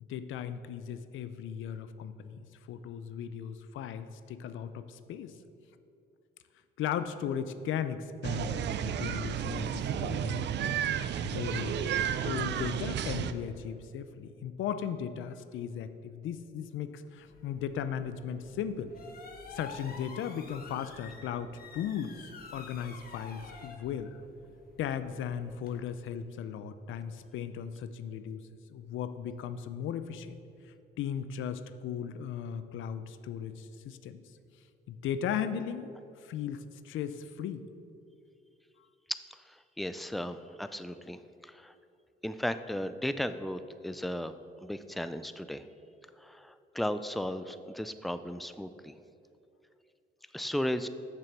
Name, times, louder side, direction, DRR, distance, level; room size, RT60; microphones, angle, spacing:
voice 1, 0.1-5.3 6.8-10.8 11.2-18.9 19.5-22.1 22.5-24.2 24.8-28.4 28.7-30.4 31.0-34.2 34.9-35.9 36.2-37.7, left 8 dB, 80° left, 11 dB, 0.5 m, -37 dB
sound 1, 8.2-13.3, right 9 dB, 60° right, 0.4 m, -32 dB
sound 2, 17.2-25.8, left 3 dB, 50° left, 1.2 m, -50 dB
voice 2, 39.5-41.7 42.2-44.3 44.6-45.7 46.2-48.9 50.3-50.9, left 1 dB, ahead, 11 dB, 0.3 m, -35 dB
6.9 x 6.8 x 6.0 m, 2.7 s
cardioid pair, 90°, 20 cm